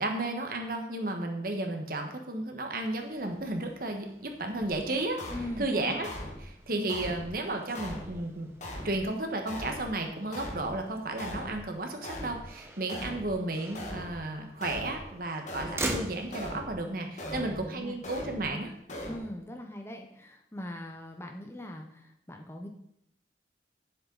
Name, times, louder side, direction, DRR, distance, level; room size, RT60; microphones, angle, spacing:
voice 1, 0.0-5.2 5.6-6.1 6.4-8.5 8.8-18.7, right 2 dB, 55° right, 4 dB, 1.3 m, -33 dB
Motor vehicle (road), 3.0-18.8, right 2 dB, 15° right, 0.9 m, -44 dB
sound 1, 4.6-4.7 5.2-5.6 6.0-6.5 6.9-7.3 7.8-8.2 8.6-9.0 9.5-9.9 10.3-10.7 11.2-11.6 12.0-12.5 12.9-13.3 13.8-14.2 14.6-15.0 15.5-15.9 16.3-16.7 17.2-17.6 18.0-18.5 18.9-19.2, left 1 dB, 40° left, 1.5 m, -40 dB
voice 2, 5.3-6.0 17.2-18.0 19.0-22.7, left 1 dB, 15° left, 3 dB, 0.8 m, -41 dB
10.0 x 7.3 x 4.0 m, 0.75 s
head